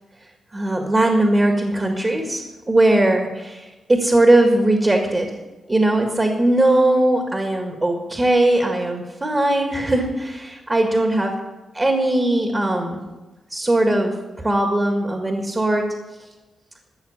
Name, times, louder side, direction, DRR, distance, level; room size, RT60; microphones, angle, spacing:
voice 1, 0.5-5.3 5.7-11.4 11.7-13.0 13.5-15.9, right 1 dB, 20° right, 3 dB, 1.8 m, -19 dB
14.5 x 6.6 x 8.0 m, 1.1 s
cardioid pair, 110°, 0 cm